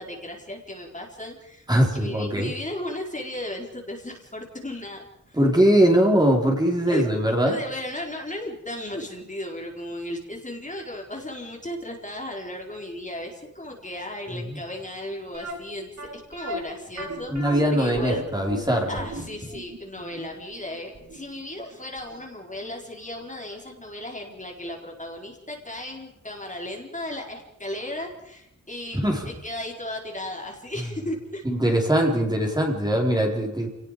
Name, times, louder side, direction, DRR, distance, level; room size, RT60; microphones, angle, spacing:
voice 1, 0.0-1.7 1.9-5.0 5.3-5.4 6.9-7.0 7.4-18.2 18.9-29.0 29.3-31.4, left 1 dB, 25° left, 0 dB, 4.3 m, -35 dB
voice 2, 1.7-2.5 5.3-7.6 14.5-14.6 17.3-19.0 28.9-29.2 31.4-33.7, equal, 15° right, 0 dB, 4.8 m, -21 dB
sound 1, 15.3-22.2 22.5-22.6 23.1-23.3 23.6-23.7, right 1 dB, 65° right, 5.9 m, -37 dB
29.0 x 19.0 x 5.2 m, 0.79 s
wide cardioid pair, 90°, 30 cm